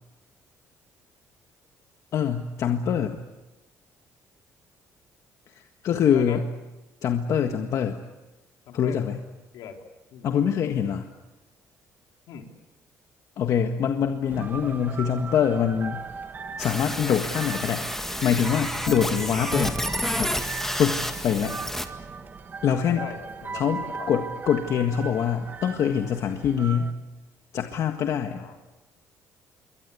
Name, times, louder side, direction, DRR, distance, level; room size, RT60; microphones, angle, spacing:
voice 1, 2.1-3.2 5.8-6.4 7.0-8.0 8.7-9.2 10.2-11.1 13.4-16.0 16.6-17.9 18.2-19.8 20.2-20.3 20.8-21.6 22.6-23.0 23.5-26.9 27.5-28.4, left 8 dB, 60° left, 5 dB, 1.7 m, -24 dB
voice 2, 6.1-6.4 8.7-9.1 9.5-9.9 10.1-10.4 12.3-12.5 20.9-21.0 22.8-24.1 28.4-28.6, left 8 dB, 80° left, 3 dB, 3.8 m, -41 dB
sound 1, 14.3-26.9, right 5 dB, 30° right, 1.8 m, -38 dB
sound 2, 16.6-21.9, left 1 dB, 5° left, 1.8 m, -30 dB
27.5 x 23.0 x 8.5 m, 1.1 s
cardioid pair, 130°, 6 cm